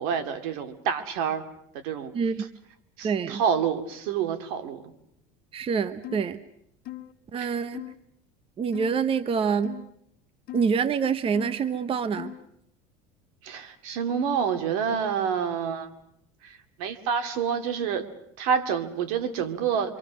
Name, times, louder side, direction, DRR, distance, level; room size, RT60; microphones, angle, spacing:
voice 1, 0.0-1.4 1.8-2.1 2.4-2.5 3.0-4.9 7.4-7.5 13.4-15.9 16.4-18.1 18.4-20.0, right 7 dB, 80° right, 9 dB, 2.4 m, -28 dB
voice 2, 2.1-2.5 3.0-3.4 5.5-6.4 7.3-7.8 8.6-9.8 10.5-12.3, right 6 dB, 30° right, 14 dB, 1.0 m, -26 dB
sound 1, 6.0-6.3 6.9-7.1 7.7-8.0 8.7-9.0 9.6-9.9 10.5-10.7 11.3-11.6 12.2-12.5, left 16 dB, 55° left, 1.5 m, -39 dB
26.0 x 26.0 x 6.3 m, 0.74 s
supercardioid pair, 120°, 19 cm